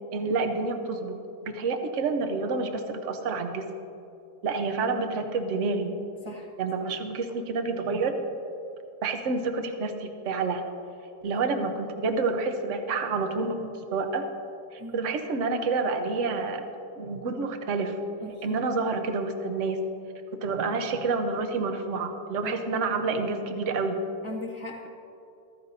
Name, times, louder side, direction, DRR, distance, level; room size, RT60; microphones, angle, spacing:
voice 1, 0.1-3.7 4.4-6.0 6.6-8.2 9.0-10.6 11.2-14.3 14.7-16.6 17.0-18.0 18.4-19.8 20.3-24.0, right 4 dB, 50° right, 6 dB, 1.1 m, -28 dB
voice 2, 18.2-18.7 22.4-22.5 24.2-24.9, equal, 20° right, -2 dB, 0.9 m, -38 dB
14.5 x 14.0 x 2.7 m, 2.8 s
omnidirectional pair, 1.9 m